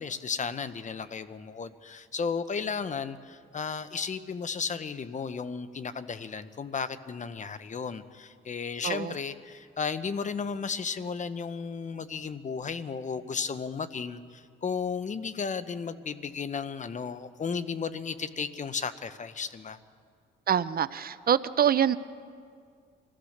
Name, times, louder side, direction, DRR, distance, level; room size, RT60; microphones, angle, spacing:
voice 1, 0.0-19.8, left 5 dB, 40° left, 13 dB, 0.9 m, -34 dB
voice 2, 20.5-22.0, right 9 dB, 50° right, 15 dB, 0.6 m, -25 dB
25.5 x 15.5 x 6.6 m, 2.2 s
cardioid pair, 90°, 20 cm